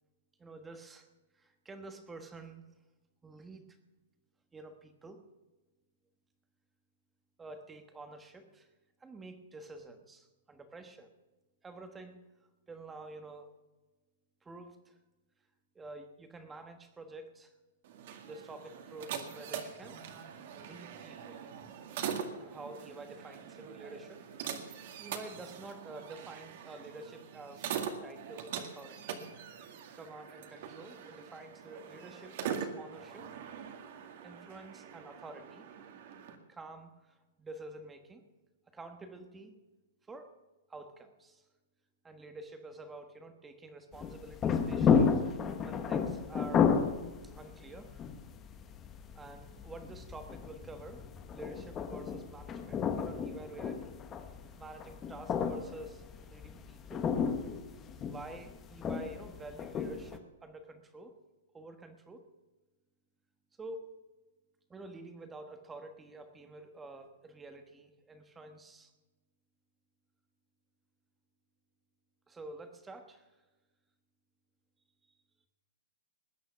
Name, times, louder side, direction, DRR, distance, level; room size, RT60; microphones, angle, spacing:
voice 1, 0.4-1.1 1.3-2.6 3.2-3.7 4.5-5.2 7.4-8.7 9.0-11.1 11.6-12.2 12.7-13.5 14.4-15.0 15.7-17.5 18.2-20.0 20.5-21.4 22.4-24.2 24.6-27.7 28.0-29.2 29.9-33.3 34.2-35.7 36.5-38.2 38.7-39.6 40.1-40.3 40.7-41.4 42.0-45.2 45.6-46.8 47.2-48.1 49.1-51.0 51.3-54.0 54.5-57.1 58.0-61.1 61.5-62.2 63.6-64.0 64.7-68.9 72.3-73.3, right 2 dB, 10° right, 7 dB, 1.3 m, -49 dB
sound 1, 17.8-36.3, right 8 dB, 50° right, 2.0 m, -43 dB
sound 2, 43.9-60.2, left 6 dB, 15° left, 1.0 m, -33 dB
20.5 x 9.4 x 5.8 m, 1.2 s
hypercardioid pair, 165°, 0 cm